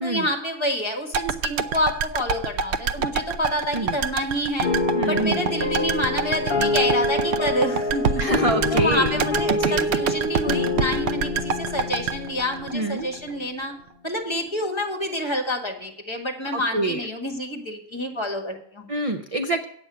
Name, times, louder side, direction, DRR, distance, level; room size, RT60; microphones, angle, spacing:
voice 1, 0.0-4.7 5.1-8.3 8.7-13.7 14.0-18.9, left 1 dB, 20° left, 2 dB, 1.6 m, -28 dB
sound 1, 1.1-13.3 13.6-13.7, right 6 dB, 65° right, 0.8 m, -26 dB
sound 2, 4.6-13.2, left 2 dB, 45° left, 1.5 m, -26 dB
voice 2, 4.9-5.5 8.2-9.2 9.5-9.9 12.7-13.1 16.5-17.1 18.9-19.6, right 2 dB, 40° right, 6 dB, 0.5 m, -26 dB
8.6 x 7.0 x 8.1 m, 0.69 s
omnidirectional pair, 1.3 m